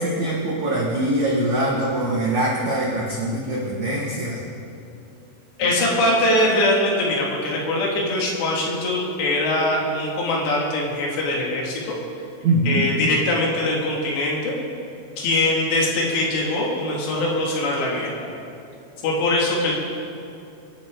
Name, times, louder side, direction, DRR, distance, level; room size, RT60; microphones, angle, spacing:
voice 1, 0.0-4.4 5.9-6.0 12.4-12.8, right 1 dB, 90° right, -3 dB, 1.6 m, -23 dB
voice 2, 5.6-11.9 12.7-14.5 15.2-18.3 19.0-19.7, left 1 dB, 60° left, -3 dB, 4.2 m, -22 dB
25.5 x 10.5 x 3.8 m, 2.6 s
omnidirectional pair, 5.8 m